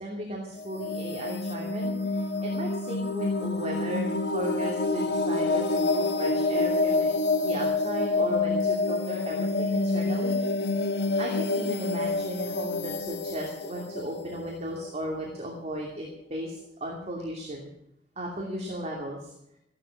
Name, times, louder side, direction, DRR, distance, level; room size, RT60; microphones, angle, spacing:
voice 1, 0.0-7.1 7.4-10.4 11.2-17.7 18.2-19.3, right 1 dB, 40° right, -1 dB, 2.8 m, -36 dB
sound 1, 0.6-15.3, left 3 dB, 65° left, 1.1 m, -28 dB
15.5 x 12.0 x 6.2 m, 0.77 s
head